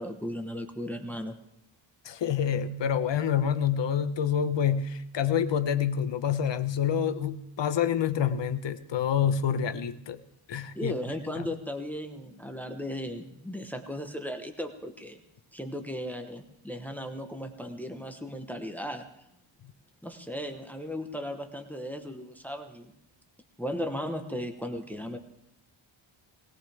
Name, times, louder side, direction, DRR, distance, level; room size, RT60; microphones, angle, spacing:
voice 1, 0.0-1.4 10.7-15.2 15.5-19.1 20.0-22.9 23.6-25.2, equal, 5° left, 5 dB, 1.1 m, -36 dB
voice 2, 2.0-10.2 10.5-11.0 11.4-11.5 19.6-19.7, left 8 dB, 60° left, 10 dB, 1.1 m, -27 dB
20.0 x 18.0 x 3.5 m, 0.80 s
wide cardioid pair, 160°, 49 cm